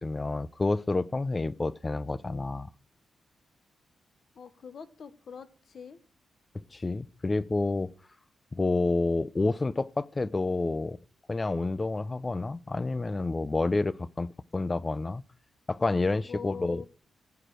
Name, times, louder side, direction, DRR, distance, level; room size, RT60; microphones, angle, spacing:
voice 1, 0.0-2.7 6.7-7.9 8.5-11.0 11.3-15.2 15.7-16.8, left 3 dB, 25° left, 0.5 m, -29 dB
voice 2, 4.3-6.0 16.3-16.9, left 6 dB, 60° left, 1.0 m, -43 dB
14.5 x 5.0 x 6.2 m
cardioid pair, 80°, 0 cm